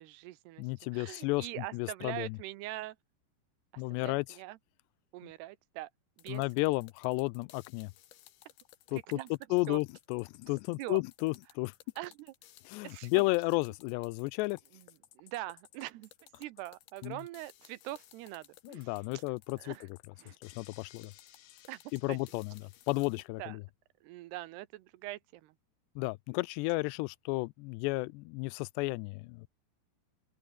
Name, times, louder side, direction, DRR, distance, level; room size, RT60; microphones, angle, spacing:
voice 1, 0.0-0.7 0.9-3.0 3.7-4.6 5.1-5.9 6.2-6.4 8.9-9.3 9.7-9.8 10.8-11.0 12.0-12.3 12.8-13.2 15.2-16.1 16.4-19.2 19.6-19.9 20.2-20.4 21.7-21.8 22.1-22.2 23.4-23.6 24.0-25.5, right 17 dB, 80° right, 2.8 m, -43 dB
voice 2, 0.6-2.4 3.8-4.3 6.3-7.9 8.9-9.2 9.5-11.7 12.7-14.6 17.0-17.2 18.6-20.0 20.4-21.1 21.9-23.6 26.0-29.5, left 24 dB, 85° left, 2.7 m, -33 dB
sound 1, 6.2-23.3, left 12 dB, 70° left, 3.3 m, -59 dB
open air
omnidirectional pair, 4.9 m